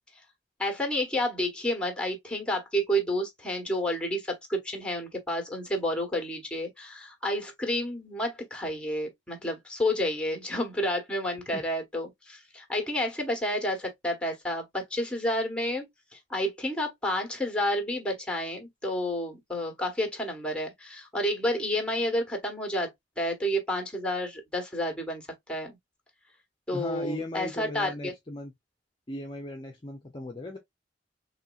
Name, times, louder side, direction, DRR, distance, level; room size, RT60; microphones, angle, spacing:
voice 1, 0.6-25.8 26.7-28.1, equal, 5° left, 1.2 m, -30 dB
voice 2, 26.7-28.5 29.1-30.6, left 2 dB, 30° left, 0.6 m, -37 dB
4.2 x 3.1 x 2.4 m
head